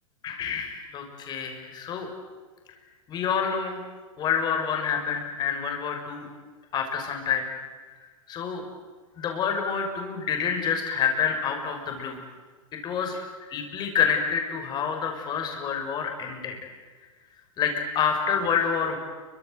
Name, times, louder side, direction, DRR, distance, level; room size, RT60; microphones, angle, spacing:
voice 1, 0.2-2.1 3.1-3.8 4.2-6.3 6.7-7.5 8.3-8.6 9.2-12.2 12.7-16.6 17.6-19.0, left 7 dB, 25° left, 3 dB, 6.3 m, -28 dB
29.0 x 25.0 x 8.0 m, 1.4 s
supercardioid pair, 150°, 17 cm